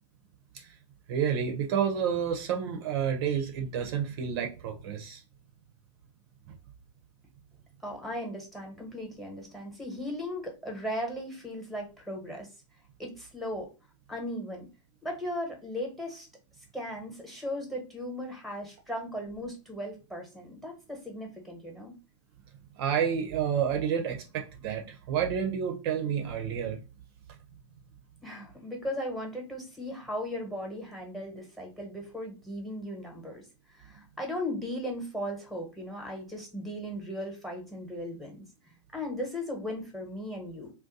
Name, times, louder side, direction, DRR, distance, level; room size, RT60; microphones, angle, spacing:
voice 1, 1.1-5.2 6.5-6.6 22.8-26.8, right 8 dB, 50° right, 0.6 m, -30 dB
voice 2, 7.8-12.5 13.0-13.7 14.1-14.6 15.0-16.3 16.7-21.9 28.2-33.4 33.7-38.4 38.9-40.7, left 1 dB, ahead, 1.1 m, -37 dB
2.6 x 2.2 x 3.8 m
hypercardioid pair, 120°, 16 cm